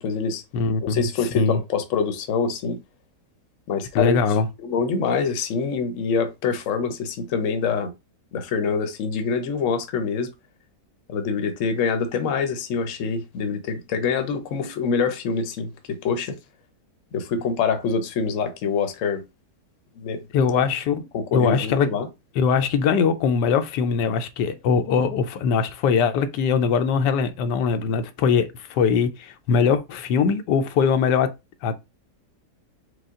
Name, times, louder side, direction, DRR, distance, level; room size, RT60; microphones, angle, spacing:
voice 1, 0.0-0.4 0.8-2.8 3.7-4.2 4.6-7.9 8.3-10.3 11.1-16.4 17.1-19.2 20.0-20.2 21.1-22.1, left 5 dB, 55° left, 1.0 m, -25 dB
voice 2, 0.5-1.0 1.4-1.6 3.9-4.5 20.3-21.9 22.3-31.3 31.6-31.8, left 6 dB, 80° left, 1.2 m, -21 dB
5.0 x 2.3 x 3.6 m
omnidirectional pair, 1.8 m